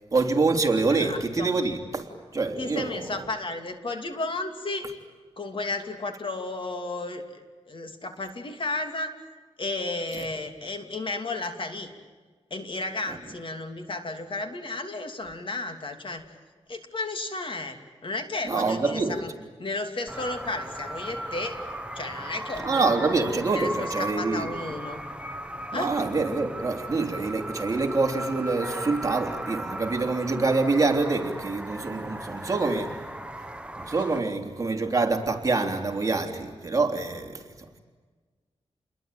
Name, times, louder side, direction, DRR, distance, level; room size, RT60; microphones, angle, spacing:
voice 1, 0.1-2.9 18.5-19.2 22.6-24.5 25.7-32.9 33.8-37.8, right 3 dB, 30° right, 2 dB, 3.4 m, -26 dB
voice 2, 0.9-1.5 2.6-4.9 5.4-7.2 7.7-9.1 9.6-11.9 12.5-16.3 16.7-17.8 18.0-19.3 19.6-21.6 21.9-25.0 25.7-26.0, left 2 dB, 50° left, 6 dB, 2.9 m, -33 dB
sound 1, 20.1-34.2, right 1 dB, 10° right, 1.1 m, -37 dB
29.5 x 22.0 x 9.2 m, 1.4 s
wide cardioid pair, 105°, 11 cm